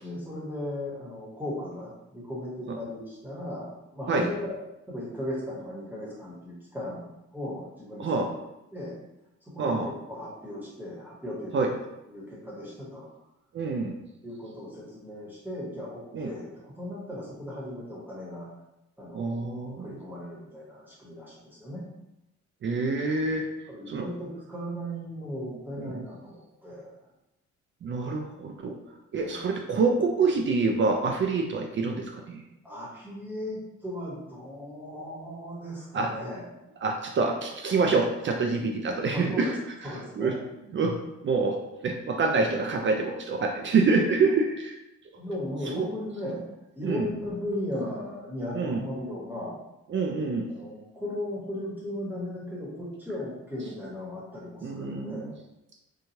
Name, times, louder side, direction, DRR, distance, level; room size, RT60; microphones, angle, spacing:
voice 1, 0.0-4.3 4.9-8.3 8.7-9.0 9.5-11.7 12.1-13.1 14.2-18.5 19.0-21.9 23.7-26.9 29.2-29.4 32.6-36.5 39.1-39.5 39.8-40.4 45.2-46.4 46.7-49.6 50.5-55.4, left 1 dB, 5° right, -6 dB, 1.1 m, -37 dB
voice 2, 9.6-9.9 11.5-11.7 13.5-14.0 16.1-16.3 19.1-19.9 22.6-23.5 23.9-24.0 25.8-26.0 27.8-28.8 29.1-32.4 35.9-36.1 36.8-39.6 39.8-40.3 40.7-41.0 41.2-41.6 41.8-44.8 45.7-45.9 46.8-47.1 48.5-48.8 49.9-50.5 54.6-55.3, right 4 dB, 40° right, 2 dB, 0.4 m, -26 dB
3.0 x 2.2 x 2.8 m, 0.91 s
cardioid pair, 90°, 30 cm